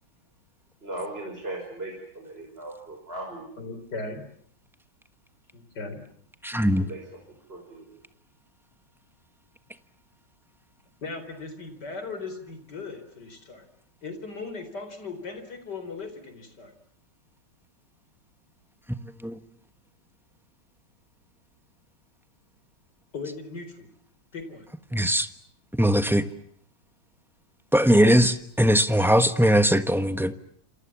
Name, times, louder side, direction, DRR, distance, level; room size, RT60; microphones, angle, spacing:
voice 1, 0.8-3.5 6.6-8.0, right 1 dB, 25° right, 1 dB, 6.1 m, -38 dB
voice 2, 3.6-4.3 5.5-6.0 11.0-13.7 14.0-16.7 23.1-23.9 24.3-24.7, left 3 dB, 50° left, 9 dB, 4.7 m, -38 dB
voice 3, 6.4-6.9 19.2-19.4 24.9-25.3 25.7-26.3 27.7-30.3, equal, ahead, 10 dB, 0.8 m, -20 dB
27.5 x 27.5 x 7.3 m, 0.66 s
omnidirectional pair, 2.3 m